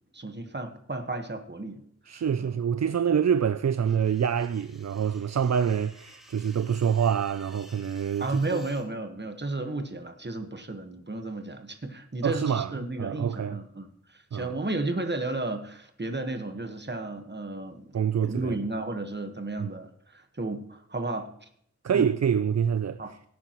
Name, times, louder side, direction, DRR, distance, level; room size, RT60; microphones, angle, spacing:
voice 1, 0.1-1.8 2.1-2.6 8.2-17.9 18.2-21.5 21.9-22.1 23.0-23.1, right 2 dB, 35° right, 1.4 m, -33 dB
voice 2, 2.1-8.6 12.2-12.7 13.0-13.6 14.3-14.6 17.9-18.6 19.6-19.7 21.8-23.0, right 8 dB, 65° right, 0.4 m, -26 dB
sound 1, 3.8-8.9, equal, ahead, 2.6 m, -54 dB
17.5 x 9.4 x 3.1 m
wide cardioid pair, 65°, 29 cm